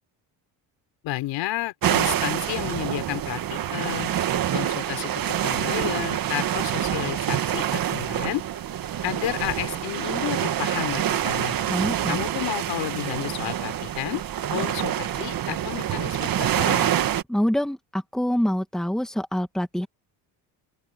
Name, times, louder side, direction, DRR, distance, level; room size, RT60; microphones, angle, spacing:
voice 1, 1.0-4.1 4.5-8.4 9.0-11.5 12.1-14.2 14.5-16.9, left 16 dB, 80° left, 4.1 m, -31 dB
sound 1, 1.8-17.2, right 11 dB, 50° right, 1.7 m, -26 dB
voice 2, 11.7-12.2 17.3-19.9, equal, ahead, 2.0 m, -25 dB
cardioid pair, 125°, 44 cm